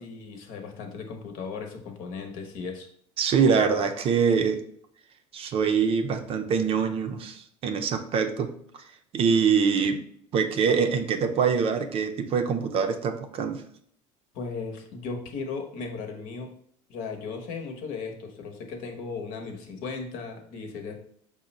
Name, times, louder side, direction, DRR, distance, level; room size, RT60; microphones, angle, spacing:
voice 1, 0.0-2.9 14.3-16.5 16.9-21.0, left 4 dB, 60° left, 3 dB, 1.0 m, -36 dB
voice 2, 3.2-4.6 5.3-8.5 9.1-10.0 10.3-13.6, right 6 dB, 40° right, 6 dB, 0.5 m, -24 dB
5.1 x 2.1 x 4.0 m, 0.65 s
supercardioid pair, 115°, 15 cm